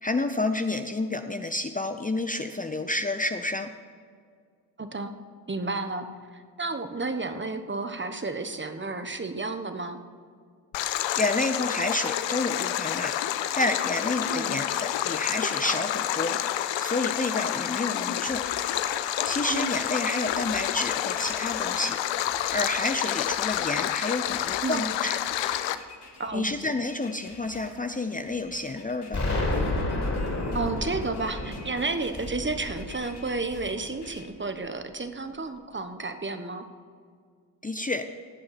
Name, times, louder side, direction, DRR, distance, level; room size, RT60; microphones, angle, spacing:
voice 1, 0.0-3.7 11.2-13.1 13.5-16.4 16.8-18.4 19.2-22.0 22.3-25.2 26.3-29.3 37.6-38.1, left 2 dB, 20° left, 7 dB, 0.8 m, -29 dB
voice 2, 4.8-5.1 5.5-6.0 6.3-10.0 14.2-14.7 19.5-19.7 24.6-24.9 26.2-26.5 30.5-36.6, right 3 dB, 25° right, 8 dB, 1.3 m, -32 dB
Stream, 10.7-25.8, left 12 dB, 75° left, 0.7 m, -29 dB
sound 1, 18.3-34.3, left 3 dB, 60° left, 2.9 m, -50 dB
Explosion, 29.1-34.0, left 2 dB, 35° left, 4.0 m, -30 dB
17.5 x 7.6 x 5.9 m, 2.1 s
supercardioid pair, 55°, 45 cm